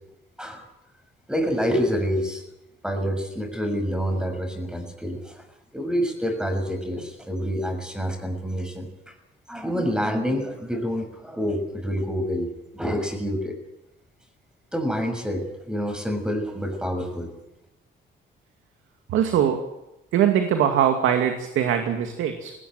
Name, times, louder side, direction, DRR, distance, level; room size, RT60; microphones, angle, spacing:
voice 1, 1.3-2.4 2.8-5.4 5.7-9.1 9.5-13.5 14.7-17.3, equal, 5° right, 6 dB, 6.6 m, -27 dB
voice 2, 19.1-19.6 20.1-22.5, right 9 dB, 85° right, 5 dB, 2.3 m, -21 dB
19.0 x 18.0 x 9.1 m, 0.92 s
cardioid pair, 90°, 20 cm